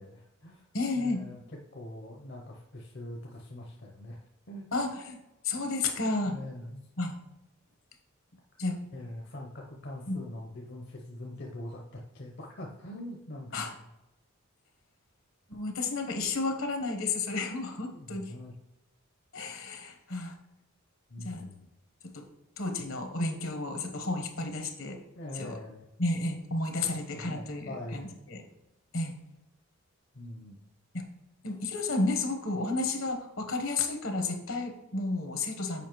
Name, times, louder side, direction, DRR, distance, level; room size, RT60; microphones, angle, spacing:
voice 1, 0.0-0.6 0.9-1.4 1.7-4.7 6.3-6.9 8.9-13.7 17.9-18.5 21.1-21.7 25.2-25.8 26.8-28.1 30.1-30.6, left 1 dB, 55° left, 0 dB, 0.7 m, -43 dB
voice 2, 0.7-1.2 4.7-5.2 5.4-6.4 7.0-7.2 8.6-8.8 10.1-10.2 13.5-13.7 15.5-18.3 19.3-20.4 21.2-21.5 22.0-22.2 22.6-25.0 25.3-25.6 26.0-28.4 28.9-29.1 30.9-31.0 31.4-35.9, left 3 dB, 75° left, 5 dB, 1.1 m, -32 dB
6.9 x 5.1 x 3.1 m, 0.94 s
head